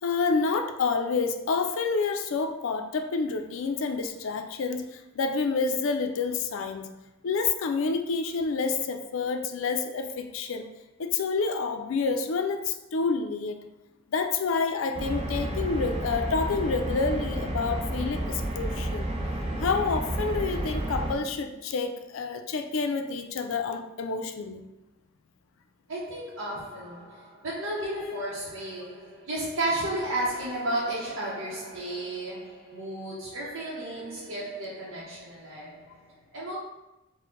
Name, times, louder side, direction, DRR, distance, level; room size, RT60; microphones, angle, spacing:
voice 1, 0.0-6.9 7.2-10.7 11.0-13.6 14.1-19.1 19.6-24.7 27.7-28.2, left 4 dB, 85° left, 0.4 m, -28 dB
sound 1, 14.9-21.1, right 1 dB, 30° right, 0.5 m, -31 dB
voice 2, 25.9-36.6, right 1 dB, 90° right, 0.8 m, -33 dB
4.4 x 2.1 x 3.8 m
head